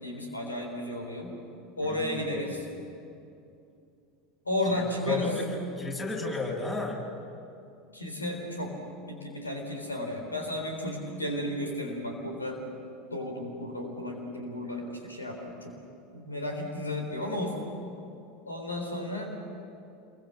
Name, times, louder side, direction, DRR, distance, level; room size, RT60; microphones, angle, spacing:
voice 1, 0.0-1.3 1.8-2.7 4.5-5.3 7.9-8.7 9.1-12.6 13.1-15.7 16.1-17.6 18.5-19.3, left 1 dB, 85° left, 2 dB, 3.8 m, -33 dB
voice 2, 1.8-2.6 4.7-5.5 5.8-7.0, left 3 dB, 25° left, -1 dB, 6.3 m, -33 dB
28.0 x 23.0 x 6.7 m, 2.6 s
figure-of-eight pair, 80°, 0 cm